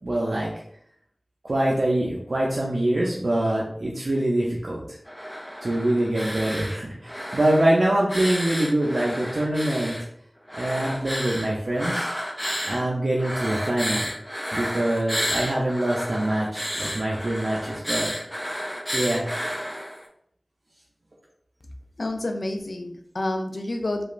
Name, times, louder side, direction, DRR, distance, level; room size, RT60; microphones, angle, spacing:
voice 1, 0.0-0.5 1.4-5.0 5.6-10.0 10.6-12.1 12.7-14.1 14.5-18.1 18.9-19.3, right 1 dB, 80° right, -4 dB, 0.4 m, -24 dB
sound 1, 5.1-6.8 7.0-10.0 10.5-12.8 13.2-20.1, equal, 5° left, 0.4 m, -31 dB
voice 2, 22.0-24.0, left 1 dB, 80° left, 4 dB, 0.3 m, -29 dB
2.9 x 2.3 x 2.4 m, 0.67 s
wide cardioid pair, 40°, 0 cm